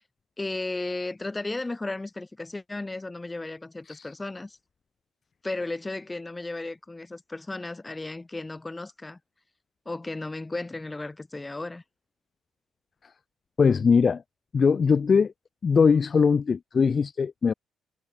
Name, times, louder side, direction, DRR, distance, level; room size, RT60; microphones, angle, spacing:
voice 1, 0.4-4.6 5.4-9.2 9.8-11.8, left 2 dB, 15° left, 3.1 m, -34 dB
voice 2, 13.6-14.2 14.5-15.3 15.6-17.5, left 5 dB, 40° left, 0.4 m, -21 dB
cardioid pair, 90°, 0 cm